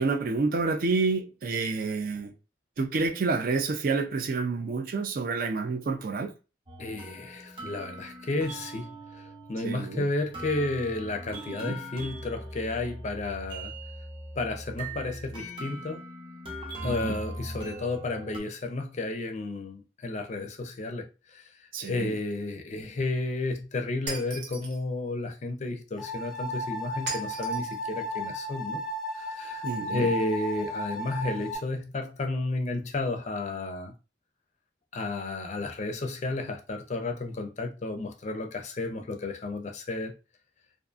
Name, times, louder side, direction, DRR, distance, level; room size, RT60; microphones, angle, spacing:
voice 1, 0.0-2.3 2.8-6.3 9.6-10.0 11.5-11.8 16.8-17.1 21.7-22.1 29.6-30.1, right 4 dB, 55° right, 0.4 m, -29 dB
sound 1, 6.7-18.4, right 1 dB, 30° right, 0.8 m, -41 dB
voice 2, 6.8-9.2 9.5-13.7 14.4-16.0 16.8-21.1 21.3-21.4 21.8-28.8 29.1-33.9 34.9-40.1, left 2 dB, 40° left, 0.4 m, -32 dB
Shatter, 24.1-24.8 27.1-27.8, right 3 dB, 80° right, 0.9 m, -37 dB
sound 2, 26.0-31.6, equal, ahead, 0.8 m, -34 dB
2.5 x 2.4 x 2.4 m
head